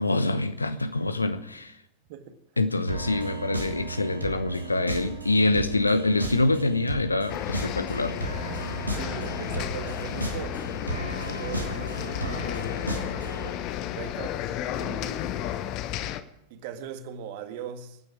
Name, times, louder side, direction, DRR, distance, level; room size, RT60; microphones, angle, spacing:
voice 1, 0.0-1.7 2.6-8.1, left 2 dB, 80° left, 1.0 m, -25 dB
sound 1, 2.9-13.5, right 2 dB, 85° right, 2.4 m, -34 dB
sound 2, 7.3-16.2, left 12 dB, 40° left, 0.9 m, -33 dB
voice 2, 8.9-10.6 11.2-12.5 13.2-13.7 13.9-14.4 14.7-15.4 16.5-18.0, right 8 dB, 50° right, 1.7 m, -40 dB
24.0 x 9.4 x 4.8 m
figure-of-eight pair, 90°, 0 cm